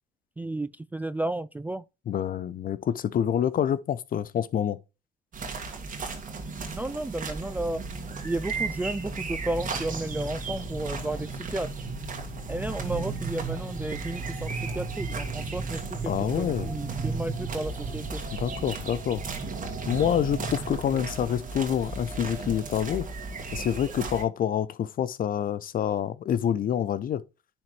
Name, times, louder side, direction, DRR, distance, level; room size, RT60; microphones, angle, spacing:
voice 1, 0.4-1.8 6.8-7.8 8.2-11.7 12.5-18.2, right 2 dB, 10° right, 0.3 m, -33 dB
voice 2, 2.1-4.8 16.1-16.7 18.3-19.2 19.9-23.1 23.5-27.2, left 9 dB, 45° left, 0.7 m, -27 dB
sound 1, 5.3-24.2, right 4 dB, 40° right, 2.2 m, -34 dB
sound 2, 9.3-17.3, left 8 dB, 70° left, 1.4 m, -46 dB
10.5 x 4.4 x 3.3 m
supercardioid pair, 80°, 20 cm